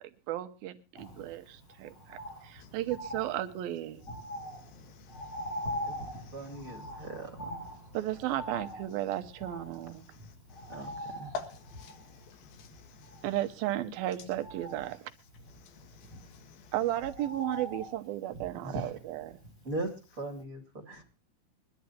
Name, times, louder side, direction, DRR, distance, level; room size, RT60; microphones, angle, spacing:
voice 1, 0.3-4.0 7.9-10.1 13.2-15.1 16.7-19.4, right 14 dB, 80° right, 2.8 m, -34 dB
Bird, 1.0-20.1 20.4-20.5, equal, 40° left, 5.7 m, -44 dB
voice 2, 4.4-6.7 10.6-13.2 15.7-16.7, left 5 dB, 75° left, 3.3 m, -48 dB
voice 3, 6.3-7.6 10.7-11.3 18.6-18.9 19.6-19.9 20.2-21.0, right 2 dB, 25° right, 2.3 m, -39 dB
23.5 x 11.5 x 2.8 m
omnidirectional pair, 4.3 m